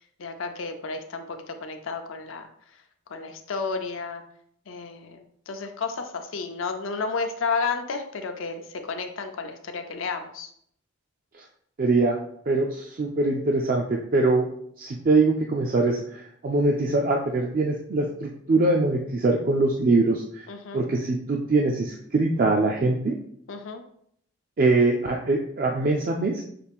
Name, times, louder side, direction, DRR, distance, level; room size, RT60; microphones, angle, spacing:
voice 1, 0.2-2.5 3.1-4.2 4.7-10.5 20.5-20.8 23.5-23.8, left 4 dB, 75° left, 5 dB, 0.6 m, -32 dB
voice 2, 11.8-12.2 12.5-14.5 14.8-20.5 20.7-23.1 24.6-26.4, right 3 dB, 45° right, 1 dB, 0.4 m, -23 dB
5.8 x 2.4 x 3.5 m, 0.67 s
head